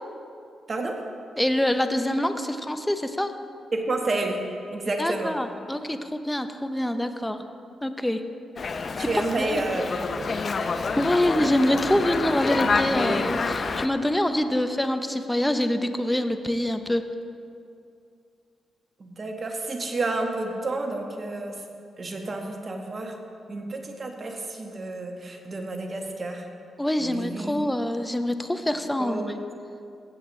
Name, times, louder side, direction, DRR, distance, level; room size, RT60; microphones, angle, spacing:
voice 1, 1.4-3.3 5.0-7.5 7.8-8.2 9.0-9.6 10.7-17.0 26.8-29.3, left 1 dB, 10° left, 8 dB, 0.7 m, -25 dB
voice 2, 3.7-4.4 4.7-5.3 9.0-10.3 11.2-11.3 19.0-21.5 22.0-23.1 23.5-26.5 27.0-27.7 29.0-29.3, right 2 dB, 45° right, 3 dB, 1.4 m, -30 dB
Dog, 8.6-13.9, left 4 dB, 50° left, 0.5 m, -27 dB
16.0 x 7.8 x 3.2 m, 2.5 s
supercardioid pair, 50°, 0 cm